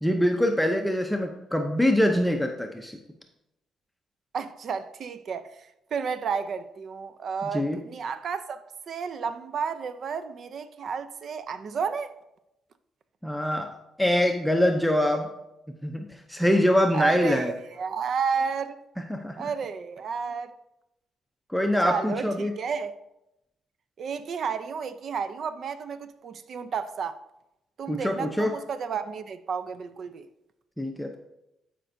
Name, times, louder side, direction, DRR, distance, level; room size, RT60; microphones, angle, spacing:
voice 1, 0.0-3.0 7.5-7.8 13.2-13.7 14.0-15.3 15.8-17.5 19.1-19.5 21.5-22.5 27.9-28.5 30.8-31.2, left 1 dB, ahead, 0.6 m, -24 dB
voice 2, 4.3-12.1 16.9-18.8 19.4-20.5 21.8-22.9 24.0-27.2 27.8-30.3, right 6 dB, 55° right, 0.5 m, -32 dB
12.0 x 5.0 x 2.6 m
cardioid pair, 110°, 0 cm